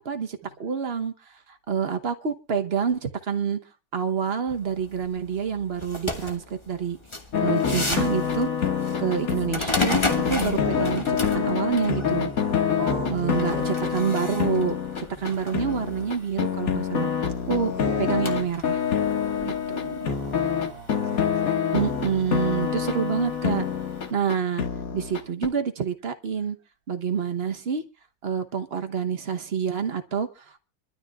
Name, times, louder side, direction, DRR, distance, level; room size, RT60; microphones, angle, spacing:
voice 1, 0.0-1.1 1.5-3.6 3.9-7.0 7.4-8.5 9.0-12.3 13.1-14.7 15.2-17.1 17.5-17.7 18.0-18.8 19.4-20.0 21.7-23.6 24.1-24.6 24.9-26.6 26.9-27.8 28.2-30.6, right 7 dB, 45° right, 7 dB, 1.0 m, -27 dB
sound 1, 4.5-24.1, left 2 dB, 20° left, 1.2 m, -36 dB
sound 2, 7.3-25.5, left 7 dB, 55° left, 1.9 m, -26 dB
voice 2, 12.8-13.9 15.2-15.7 17.7-18.0 20.0-21.5, right 3 dB, 70° right, 4 dB, 2.3 m, -39 dB
25.5 x 12.5 x 2.4 m, 0.29 s
omnidirectional pair, 1.9 m